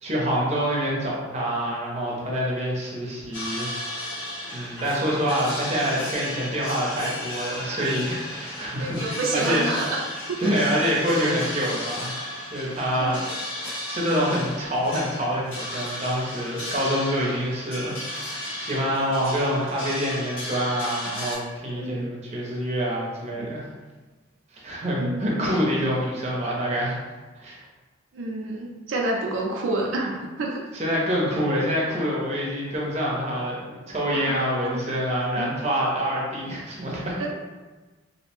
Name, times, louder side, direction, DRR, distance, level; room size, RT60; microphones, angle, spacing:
voice 1, 0.0-3.8 4.0-4.2 4.5-9.7 10.4-12.1 12.5-13.2 13.9-23.6 24.6-27.0 27.4-27.6 30.7-37.2, equal, 35° right, -4 dB, 0.5 m, -26 dB
sound 1, 3.3-21.3, left 1 dB, 90° left, 0.9 m, -34 dB
voice 2, 8.8-10.0 10.3-10.4 11.2-11.3 13.0-13.2 21.7-22.1 23.3-23.5 25.0-25.5 28.1-30.6 34.1-34.8 35.3-35.5 37.2-37.3, right 2 dB, 90° right, -1 dB, 0.4 m, -29 dB
2.6 x 2.0 x 2.9 m, 1.3 s
head